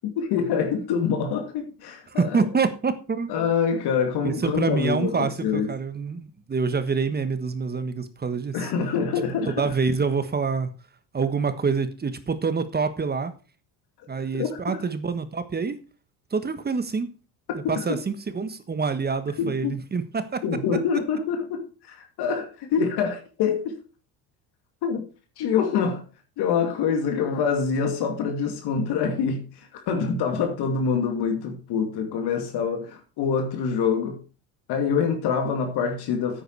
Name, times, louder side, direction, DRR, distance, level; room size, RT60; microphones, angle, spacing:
voice 1, 0.0-2.4 3.3-5.7 8.5-9.5 14.3-14.8 17.6-17.8 19.4-19.7 20.4-21.6 21.9-23.7 24.8-25.0 25.4-26.0 26.4-29.4 29.9-34.2 34.7-36.4, left 6 dB, 65° left, 2.5 m, -25 dB
voice 2, 2.1-3.3 4.2-8.7 9.5-10.7 11.1-13.3 14.1-15.8 16.3-17.1 17.7-20.4, right 5 dB, 20° right, 1.3 m, -26 dB
9.3 x 8.7 x 4.7 m
supercardioid pair, 100°, 43 cm